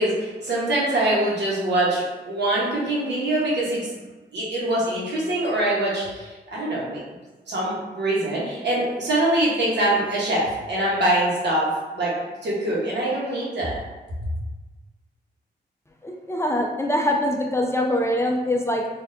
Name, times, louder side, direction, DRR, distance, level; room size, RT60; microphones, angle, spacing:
voice 1, 0.0-3.9 4.3-7.0 7.5-12.2 12.4-13.8 14.2-14.3, right 1 dB, 75° right, -6 dB, 1.2 m, -24 dB
voice 2, 16.0-18.9, left 1 dB, 15° left, 0 dB, 0.4 m, -23 dB
4.0 x 2.7 x 2.6 m, 1.2 s
wide cardioid pair, 105°, 18 cm